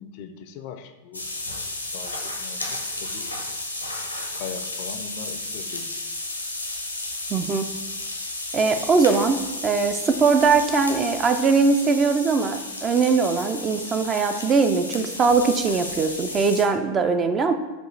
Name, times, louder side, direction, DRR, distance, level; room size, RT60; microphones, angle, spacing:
voice 1, 0.0-1.6 1.9-3.3 4.3-6.0, left 7 dB, 45° left, 7 dB, 0.4 m, -40 dB
sound 1, 1.1-16.6, left 2 dB, 85° left, 0.6 m, -33 dB
voice 2, 7.3-7.7 8.5-17.5, right 4 dB, 25° right, 8 dB, 0.3 m, -21 dB
5.9 x 2.4 x 3.2 m, 1.1 s
figure-of-eight pair, 90°, 0 cm